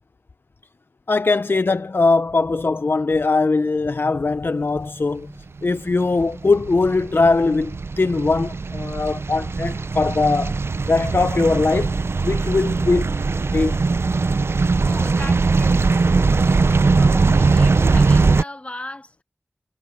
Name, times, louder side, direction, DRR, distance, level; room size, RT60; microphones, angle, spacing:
voice 1, 1.1-5.3 5.6-10.6 10.9-11.9 12.2-13.1 13.5-13.8, left 3 dB, 60° left, 0.4 m, -20 dB
sound 1, 5.6-18.4, right 4 dB, 80° right, 0.5 m, -20 dB
voice 2, 14.6-19.2, left 1 dB, 30° left, 1.7 m, -38 dB
wide cardioid pair, 60°, 4 cm